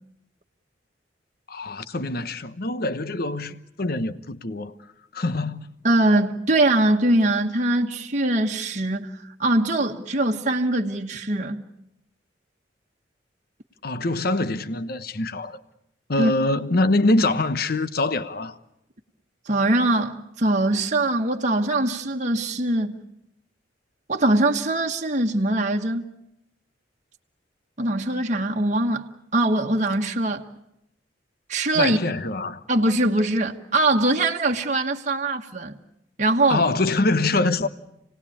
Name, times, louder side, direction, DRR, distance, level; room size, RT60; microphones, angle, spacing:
voice 1, 1.5-4.7 5.1-5.7 13.8-15.6 16.1-18.6 31.7-32.6 36.5-37.7, left 2 dB, 55° left, 1.1 m, -24 dB
voice 2, 5.8-11.6 16.2-16.3 19.4-23.0 24.1-26.1 27.8-29.1 29.3-30.5 31.5-32.0 32.7-35.8 36.2-36.7, right 2 dB, 40° right, 1.3 m, -22 dB
29.0 x 18.5 x 8.6 m
head